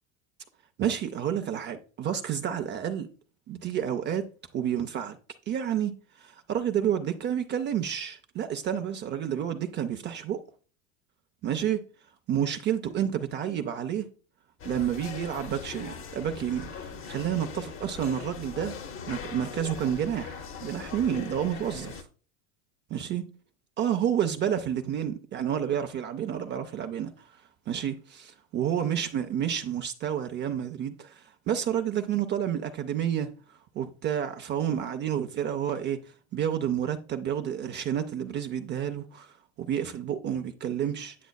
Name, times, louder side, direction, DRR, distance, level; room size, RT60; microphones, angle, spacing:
voice 1, 0.8-3.1 3.5-4.3 4.5-5.2 5.5-5.9 6.2-10.4 11.4-11.8 12.3-14.1 14.6-18.8 19.1-22.1 22.9-23.2 23.8-33.3 33.7-36.0 36.3-41.2, right 9 dB, 25° right, 0.5 m, -30 dB
sound 1, 14.6-22.0, left 6 dB, 30° left, 0.8 m, -40 dB
9.2 x 6.1 x 2.3 m
supercardioid pair, 125°, 42 cm